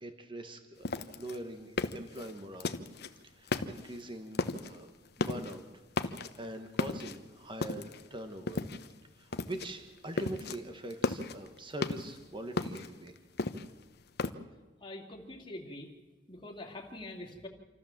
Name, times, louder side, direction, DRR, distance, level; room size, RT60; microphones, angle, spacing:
voice 1, 0.0-2.7 3.2-4.9 5.2-5.6 6.1-8.6 9.2-13.1, right 1 dB, 25° right, 6 dB, 1.5 m, -43 dB
sound 1, 0.8-3.1 3.5-4.0 4.3-4.8 5.1-5.6 5.9-6.5 6.8-8.1 8.5-9.0 9.3-9.7 10.0-10.6 10.9-12.2 12.6-14.3, left 3 dB, 60° left, 1.0 m, -35 dB
voice 2, 14.8-15.9 16.3-17.5, left 1 dB, 25° left, 0 dB, 2.9 m, -44 dB
27.5 x 13.5 x 7.5 m, 1.2 s
head